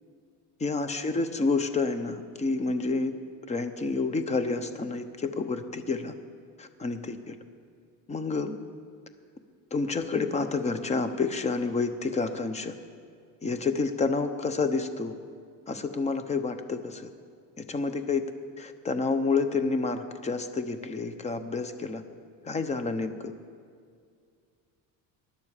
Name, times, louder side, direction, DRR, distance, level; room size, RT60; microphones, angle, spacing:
voice 1, 0.6-3.1 3.5-6.1 6.6-7.4 8.1-8.6 9.7-12.7 13.4-15.1 15.7-17.1 17.6-18.2 18.6-22.0 22.4-23.3, left 4 dB, 20° left, 9 dB, 0.7 m, -29 dB
19.5 x 11.0 x 4.9 m, 2.2 s
cardioid pair, 165°, 35 cm